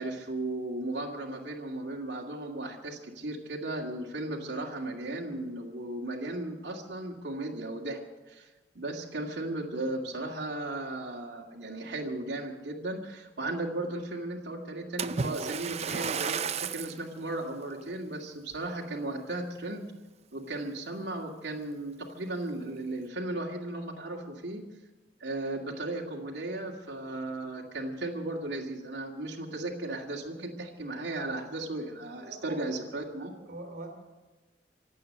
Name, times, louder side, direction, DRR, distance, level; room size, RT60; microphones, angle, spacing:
voice 1, 0.0-8.0 8.3-8.5 8.7-19.9 20.3-24.6 25.2-33.3, right 2 dB, 80° right, -2 dB, 2.3 m, -36 dB
Splash splatter, 15.0-17.0 17.7-17.9 18.5-18.6, right 6 dB, 40° right, 0.5 m, -33 dB
voice 2, 32.0-33.9, right 2 dB, 60° right, 3 dB, 2.9 m, -44 dB
25.5 x 8.6 x 6.6 m, 1.2 s
head